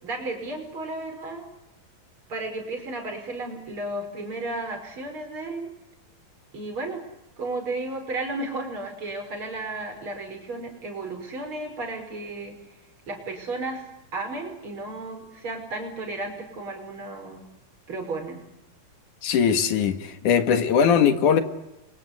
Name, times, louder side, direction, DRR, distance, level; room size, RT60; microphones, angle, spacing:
voice 1, 0.0-1.5 2.3-5.7 6.5-7.0 7.4-12.5 13.1-13.9 14.1-17.4 17.9-18.4, right 2 dB, 35° right, 3 dB, 6.3 m, -33 dB
voice 2, 19.2-21.4, left 7 dB, 65° left, 9 dB, 3.1 m, -20 dB
30.0 x 24.0 x 8.3 m, 0.91 s
omnidirectional pair, 4.0 m